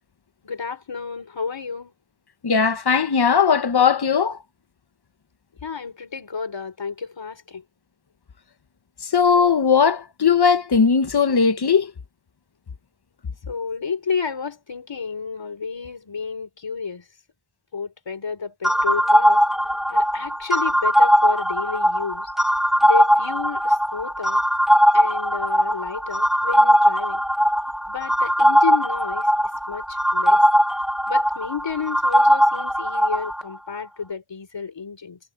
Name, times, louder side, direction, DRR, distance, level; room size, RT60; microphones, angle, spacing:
voice 1, 0.4-1.9 5.6-7.6 13.5-17.0 17.7-19.4 19.9-22.3 22.8-24.4 24.9-27.2 27.9-29.3 29.7-30.4 31.1-35.2, left 5 dB, 80° left, 4.1 m, -31 dB
voice 2, 2.4-4.4 9.1-11.9, left 6 dB, 60° left, 1.2 m, -18 dB
sound 1, 18.6-33.4, equal, ahead, 1.0 m, -19 dB
wide cardioid pair, 65°, 44 cm